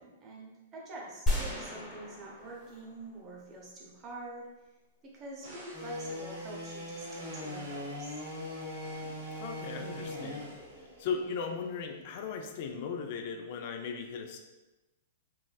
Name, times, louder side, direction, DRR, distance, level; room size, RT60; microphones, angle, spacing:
voice 1, 0.0-4.5 5.0-8.2, right 2 dB, 30° right, -3 dB, 0.8 m, -46 dB
sound 1, 1.3-3.5, equal, 5° left, 0.9 m, -34 dB
sound 2, 5.4-6.0 6.7-8.0 8.5-9.2 10.0-10.4, right 1 dB, 60° right, 1.2 m, -52 dB
sound 3, 5.7-12.8, left 1 dB, 45° right, 1.3 m, -41 dB
voice 2, 9.4-10.5 11.0-14.4, left 5 dB, 55° left, 5 dB, 0.4 m, -37 dB
3.8 x 2.0 x 2.3 m, 1.1 s
hypercardioid pair, 125°, 0 cm